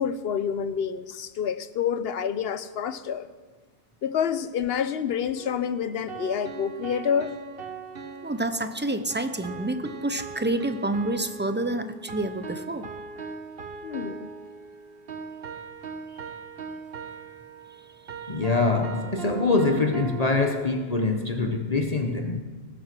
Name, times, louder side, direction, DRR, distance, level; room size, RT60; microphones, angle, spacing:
voice 1, 0.0-3.3 4.0-7.3 13.8-14.3, left 7 dB, 70° left, 13 dB, 0.9 m, -28 dB
sound 1, 5.4-20.8, right 4 dB, 65° right, 1.3 m, -40 dB
voice 2, 8.2-12.9, right 1 dB, 15° right, 10 dB, 0.6 m, -28 dB
voice 3, 18.3-22.4, left 3 dB, 40° left, 4 dB, 1.1 m, -24 dB
20.5 x 7.7 x 6.1 m, 1.4 s
omnidirectional pair, 1.1 m